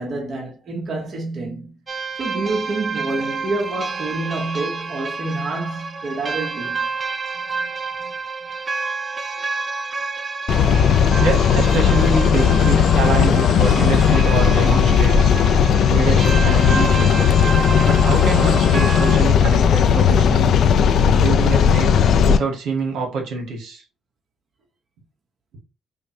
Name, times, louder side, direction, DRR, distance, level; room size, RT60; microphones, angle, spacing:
voice 1, 0.0-1.8 2.2-6.9, right 2 dB, 50° right, 0.9 m, -27 dB
sound 1, 1.9-19.2, right 4 dB, 35° right, 0.5 m, -29 dB
voice 2, 7.4-7.7 8.0-8.2 11.2-15.3 15.6-17.3 17.8-20.7 21.2-23.8, right 4 dB, 85° right, 1.3 m, -26 dB
sound 2, 10.5-22.4, left 7 dB, 70° left, 0.4 m, -16 dB
5.0 x 2.0 x 2.7 m
cardioid pair, 90°, 0 cm